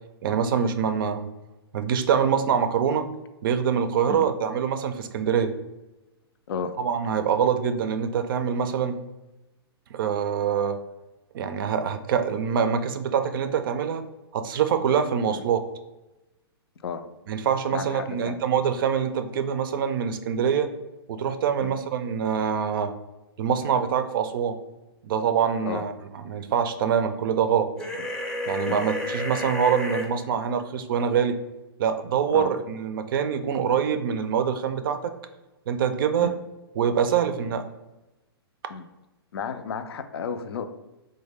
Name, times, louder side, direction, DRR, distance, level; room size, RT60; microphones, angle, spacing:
voice 1, 0.2-1.3 1.7-3.1 3.4-5.5 6.8-9.0 9.9-10.8 11.3-14.0 14.3-15.6 17.3-20.7 21.1-22.9 23.4-24.6 25.0-27.7 28.5-31.4 31.8-35.1 35.7-36.3 36.8-37.7, right 7 dB, 55° right, 9 dB, 0.4 m, -25 dB
voice 2, 17.7-18.4 21.6-21.7 25.6-25.8 28.7-28.8 32.3-32.5 36.2-36.4 38.7-38.9 39.3-40.7, left 6 dB, 70° left, 9 dB, 0.4 m, -32 dB
sound 1, 27.8-30.1, left 1 dB, 5° left, 0.5 m, -31 dB
3.1 x 2.1 x 3.4 m, 1.0 s
hypercardioid pair, 135°, 13 cm